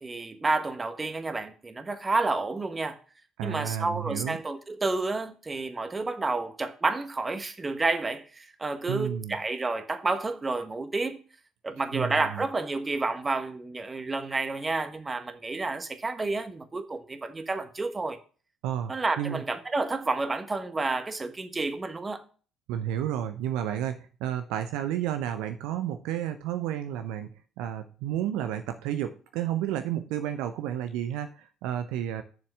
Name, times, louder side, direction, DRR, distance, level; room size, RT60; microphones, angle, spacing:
voice 1, 0.0-3.0 3.4-11.2 11.6-18.2 18.9-22.2, right 3 dB, 25° right, 1.2 m, -30 dB
voice 2, 3.4-4.4 8.9-9.4 11.9-12.4 18.6-19.4 22.7-27.3 27.6-32.2, right 11 dB, 65° right, 0.6 m, -31 dB
7.0 x 6.5 x 6.1 m
figure-of-eight pair, 50°, 0 cm